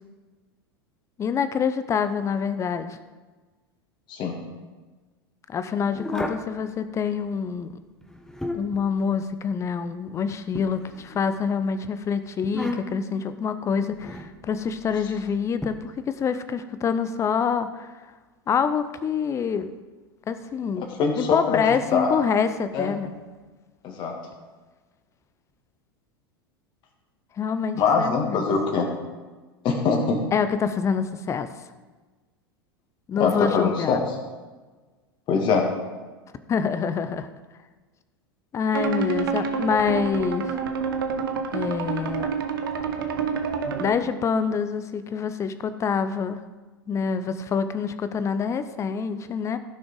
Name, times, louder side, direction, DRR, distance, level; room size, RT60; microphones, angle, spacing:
voice 1, 1.2-3.0 5.5-7.7 8.5-18.0 18.5-19.7 20.3-20.9 21.2-23.1 27.4-28.5 30.3-31.5 33.1-34.0 36.5-37.3 38.5-40.5 41.5-42.3 43.8-46.4 46.9-49.6, left 6 dB, 25° left, 11 dB, 0.8 m, -26 dB
sound 1, 5.9-6.5 8.0-8.8 10.5-11.4 12.4-13.1 14.0-14.3 15.6-15.7, left 2 dB, 5° left, 1.1 m, -33 dB
voice 2, 21.0-21.6 21.9-22.2 22.7-22.9 23.8-24.1 27.8-28.9 29.6-30.2 33.2-34.0 35.3-35.7, left 5 dB, 40° left, 2 dB, 2.3 m, -23 dB
sound 2, 38.7-43.9, right 6 dB, 65° right, 1.2 m, -28 dB
15.5 x 6.3 x 4.8 m, 1.3 s
figure-of-eight pair, 85°, 12 cm